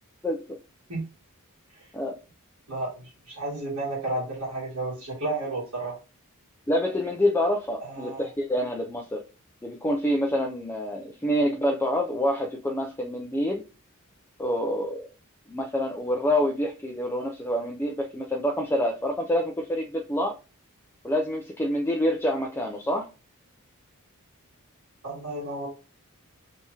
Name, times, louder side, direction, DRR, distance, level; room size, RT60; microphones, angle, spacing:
voice 1, 0.2-0.6 1.9-2.2 6.7-9.2 9.6-13.6 14.4-15.1 15.5-20.4 21.0-23.1, equal, 10° left, 0 dB, 0.5 m, -27 dB
voice 2, 2.7-6.0 7.8-8.3 25.0-25.7, right 2 dB, 70° right, -5 dB, 1.9 m, -32 dB
3.6 x 2.9 x 4.1 m, 0.32 s
head